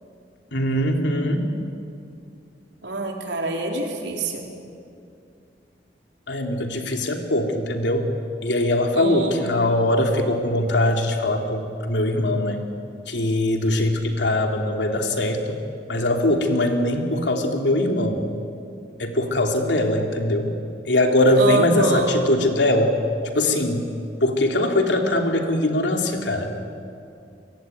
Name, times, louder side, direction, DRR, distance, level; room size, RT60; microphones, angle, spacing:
voice 1, 0.5-1.4 6.3-8.1 8.4-12.6 13.1-15.6 15.9-18.2 19.0-20.5 20.9-22.9 23.3-23.9 24.2-26.5, left 1 dB, 90° left, 3 dB, 3.1 m, -21 dB
voice 2, 2.8-4.5 8.9-9.6 21.4-22.1, right 2 dB, 80° right, 1 dB, 4.0 m, -25 dB
25.0 x 22.0 x 9.3 m, 2.5 s
head